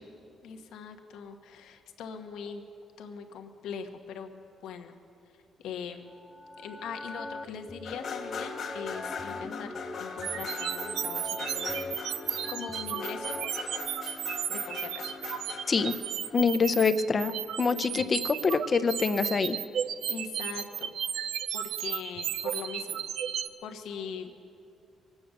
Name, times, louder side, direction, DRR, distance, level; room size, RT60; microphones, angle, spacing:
voice 1, 0.4-2.6 3.0-5.0 5.6-6.1 6.6-11.8 12.5-13.4 14.5-15.1 17.7-18.2 20.1-20.9 21.5-23.0 23.6-24.5, left 6 dB, 85° left, 4 dB, 1.1 m, -41 dB
sound 1, 6.1-13.5, left 2 dB, 5° left, 0.6 m, -41 dB
sound 2, 7.8-16.7, left 5 dB, 60° left, 1.6 m, -41 dB
sound 3, 10.2-23.5, right 9 dB, 80° right, 0.5 m, -34 dB
voice 2, 16.3-19.6, left 5 dB, 40° left, 12 dB, 0.7 m, -25 dB
23.0 x 8.7 x 6.6 m, 2.6 s
cardioid pair, 90°, 0 cm